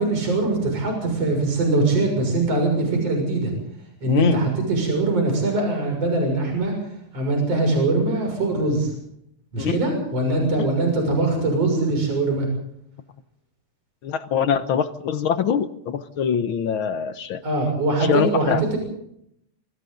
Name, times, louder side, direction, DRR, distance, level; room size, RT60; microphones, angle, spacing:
voice 1, 0.0-3.5 4.0-6.7 7.1-8.9 9.5-12.5 17.4-18.8, right 2 dB, 55° right, 2 dB, 7.5 m, -22 dB
voice 2, 4.1-4.4 9.6-9.9 10.6-10.7 14.0-17.4 18.1-18.6, left 7 dB, 60° left, 10 dB, 1.4 m, -23 dB
27.5 x 24.0 x 3.9 m, 0.73 s
omnidirectional pair, 3.4 m